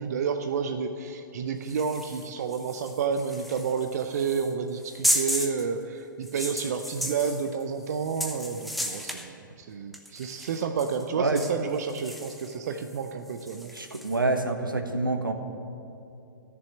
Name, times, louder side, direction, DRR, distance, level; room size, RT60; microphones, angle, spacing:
voice 1, 0.0-13.7, right 6 dB, 50° right, 7 dB, 0.7 m, -30 dB
sound 1, 1.7-5.7 6.2-9.3 9.9-11.1 11.4-14.2, equal, ahead, 0.9 m, -34 dB
voice 2, 13.7-15.3, right 2 dB, 80° right, 5 dB, 1.4 m, -27 dB
14.0 x 6.9 x 9.1 m, 2.7 s
figure-of-eight pair, 120°, 11 cm